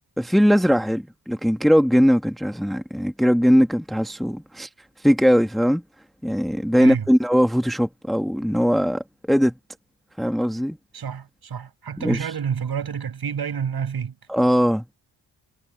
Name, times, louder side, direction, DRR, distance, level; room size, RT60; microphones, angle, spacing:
voice 1, 0.2-4.7 5.0-5.8 6.2-9.5 10.2-10.8 12.0-12.3 14.3-14.8, equal, ahead, 1.3 m, -20 dB
voice 2, 10.9-14.2, right 7 dB, 55° right, 7.6 m, -29 dB
wide cardioid pair, 125°, 44 cm